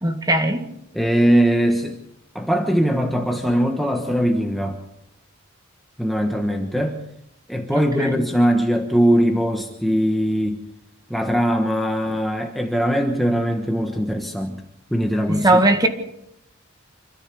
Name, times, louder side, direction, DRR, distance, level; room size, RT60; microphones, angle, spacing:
voice 1, 0.0-0.7 7.7-8.1 15.3-15.9, right 2 dB, 20° right, 1.9 m, -19 dB
voice 2, 0.9-2.0 2.3-4.8 6.0-7.0 7.5-10.6 11.1-14.6 14.9-15.6, equal, ahead, 1.2 m, -21 dB
26.5 x 14.0 x 6.9 m
head